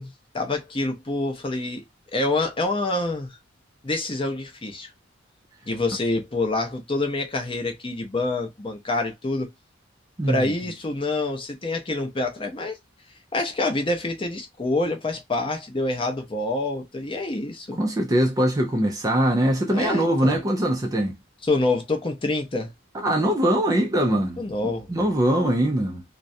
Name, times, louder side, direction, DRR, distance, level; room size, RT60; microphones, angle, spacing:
voice 1, 0.0-1.8 2.1-3.4 3.8-4.9 5.7-9.5 10.3-12.8 13.3-17.8 19.7-20.3 21.4-22.7 24.4-24.9, left 2 dB, 25° left, 0.6 m, -26 dB
voice 2, 10.2-10.5 17.8-21.2 22.9-24.4 24.9-26.0, right 1 dB, 20° right, 0.3 m, -22 dB
2.3 x 2.1 x 2.6 m
head